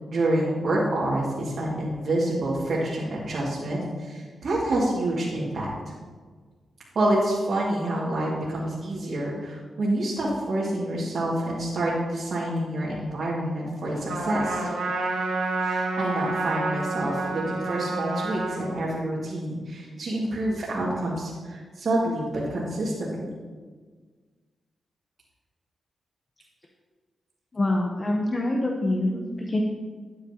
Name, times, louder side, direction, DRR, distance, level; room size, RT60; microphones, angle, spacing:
voice 1, 0.1-5.7 6.9-14.7 15.6-22.2 22.5-23.3, right 1 dB, 60° right, -8 dB, 2.6 m, -27 dB
Trumpet, 14.1-18.7, right 2 dB, 80° right, 2.1 m, -29 dB
voice 2, 27.5-29.6, left 1 dB, 35° left, 0 dB, 1.0 m, -25 dB
12.5 x 8.6 x 3.0 m, 1.5 s
cardioid pair, 70°, 0 cm